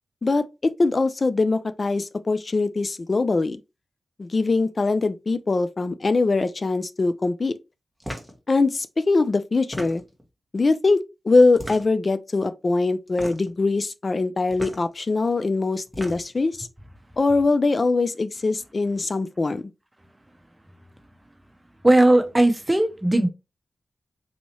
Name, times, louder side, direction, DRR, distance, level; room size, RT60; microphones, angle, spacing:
voice 1, 0.2-3.6 4.2-7.5 8.5-10.0 10.5-11.0 11.2-16.7 17.2-19.6, left 3 dB, 50° left, 0.4 m, -22 dB
sound 1, 8.0-8.4 9.5-10.2 11.5-12.1 13.1-13.6 14.5-14.8 15.7-16.4, equal, 5° left, 1.2 m, -36 dB
voice 2, 21.8-23.3, right 1 dB, 15° right, 0.8 m, -17 dB
4.2 x 2.7 x 3.0 m
cardioid pair, 50°, 0 cm